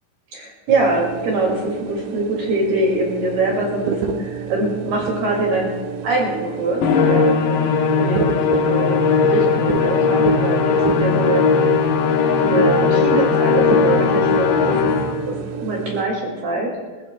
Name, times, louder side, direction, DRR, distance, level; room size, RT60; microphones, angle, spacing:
voice 1, 0.3-5.7 6.0-7.6 8.0-11.7 12.3-16.7, right 2 dB, 55° right, -2 dB, 3.8 m, -23 dB
sound 1, 0.7-16.0, right 8 dB, 85° right, 2.7 m, -30 dB
Musical instrument, 6.8-15.3, left 5 dB, 90° left, 4.0 m, -18 dB
26.5 x 15.0 x 2.2 m, 1.4 s
omnidirectional pair, 5.9 m